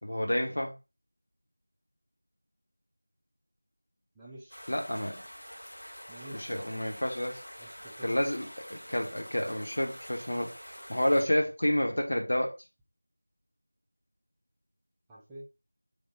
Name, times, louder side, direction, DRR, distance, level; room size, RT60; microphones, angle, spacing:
voice 1, 0.0-0.7 4.7-5.2 6.3-7.4 8.0-10.5 10.9-12.5, left 1 dB, 60° left, 1.0 m, -29 dB
voice 2, 4.1-4.7 6.1-6.7 7.6-8.1 15.1-15.5, right 1 dB, 5° right, 0.4 m, -48 dB
sound 1, 4.5-11.2, equal, 85° left, 1.8 m, -47 dB
3.5 x 2.6 x 3.9 m
figure-of-eight pair, 175°, 0 cm